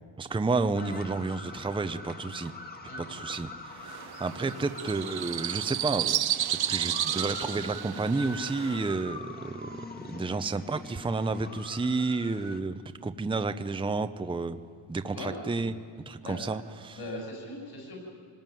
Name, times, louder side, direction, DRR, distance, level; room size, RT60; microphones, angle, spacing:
voice 1, 0.2-2.5 3.0-6.2 6.7-9.7 10.0-14.6 14.9-15.7 16.1-17.0, right 3 dB, 10° right, 9 dB, 0.7 m, -31 dB
sound 1, 0.7-12.6, left 2 dB, 20° left, 1.7 m, -44 dB
voice 2, 2.9-3.2 15.1-15.3 16.2-16.4 16.9-18.0, left 1 dB, 60° left, 0 dB, 7.5 m, -40 dB
sound 2, 3.8-9.0, right 11 dB, 60° right, 0.9 m, -32 dB
26.0 x 20.0 x 9.2 m, 2.3 s
cardioid pair, 135°, 43 cm